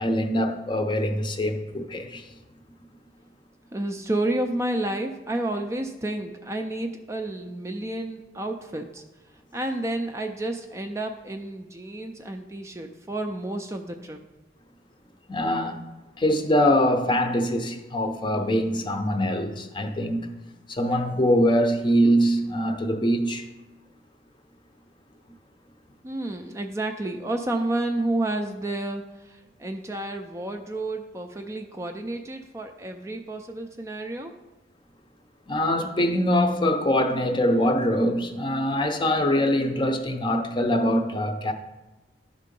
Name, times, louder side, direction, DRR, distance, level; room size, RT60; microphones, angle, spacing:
voice 1, 0.0-2.2 15.3-15.8 16.2-20.3 20.7-23.5 35.5-41.5, equal, 25° left, 0.6 m, -23 dB
voice 2, 3.7-9.0 9.5-14.2 26.0-34.4, right 1 dB, 15° right, 0.4 m, -30 dB
11.0 x 3.7 x 5.2 m
head